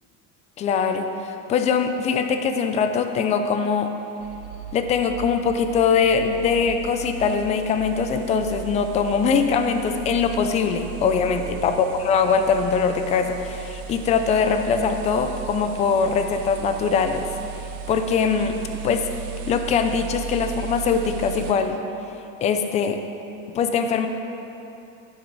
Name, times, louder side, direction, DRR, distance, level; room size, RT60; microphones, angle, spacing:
voice 1, 0.6-3.9 4.7-17.3 17.9-18.6 18.8-19.1 19.5-21.8 22.4-23.0 23.5-24.1, left 6 dB, 20° left, 7 dB, 0.4 m, -22 dB
sound 1, 4.2-21.5, right 10 dB, 65° right, 0.9 m, -36 dB
11.5 x 9.9 x 4.0 m, 2.8 s
cardioid pair, 160°, 40 cm